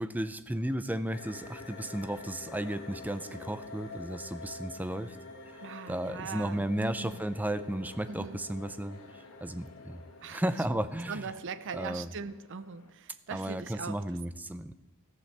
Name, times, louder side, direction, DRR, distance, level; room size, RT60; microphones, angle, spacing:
voice 1, 0.0-5.2 5.9-10.0 10.3-11.3 11.7-12.1 13.3-14.7, right 1 dB, 10° right, 12 dB, 0.4 m, -34 dB
sound 1, 1.1-12.1, left 3 dB, 60° left, 2.5 m, -48 dB
sound 2, 2.5-12.9, left 3 dB, 80° left, 1.2 m, -57 dB
voice 2, 5.6-7.3 8.1-8.4 10.2-10.6 11.1-14.0, right 5 dB, 55° right, 14 dB, 0.6 m, -41 dB
14.5 x 14.0 x 3.3 m, 1.1 s
head